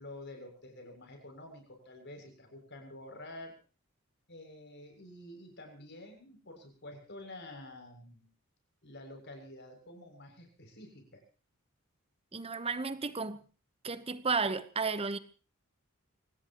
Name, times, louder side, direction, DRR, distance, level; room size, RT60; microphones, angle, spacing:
voice 1, 0.0-3.5 4.3-8.3 8.8-11.2, left 1 dB, 55° left, 7.1 m, -49 dB
voice 2, 12.3-13.4 13.8-15.2, right 4 dB, 25° right, 1.1 m, -33 dB
25.0 x 18.5 x 3.1 m
head